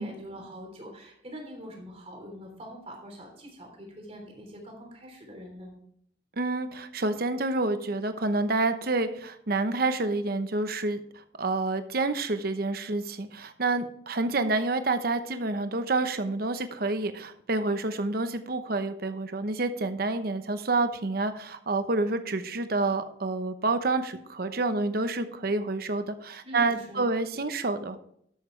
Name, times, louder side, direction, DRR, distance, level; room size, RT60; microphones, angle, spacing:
voice 1, 0.0-5.7 26.4-27.1 27.3-27.5, equal, 35° right, 1 dB, 3.3 m, -44 dB
voice 2, 6.4-11.0 11.4-28.0, right 3 dB, 60° right, 9 dB, 0.9 m, -28 dB
12.0 x 8.2 x 3.3 m, 0.69 s
head